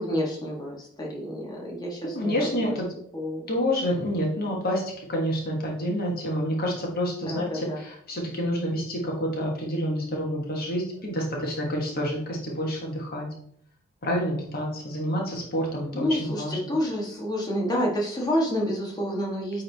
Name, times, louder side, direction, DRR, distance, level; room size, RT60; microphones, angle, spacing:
voice 1, 0.0-2.7 3.1-3.4 7.2-7.8 15.9-19.6, equal, 20° left, -3 dB, 1.6 m, -29 dB
voice 2, 2.1-2.9 3.5-4.8 5.1-13.3 14.0-16.6, equal, 45° left, -1 dB, 1.5 m, -28 dB
9.4 x 3.7 x 3.5 m, 0.65 s
head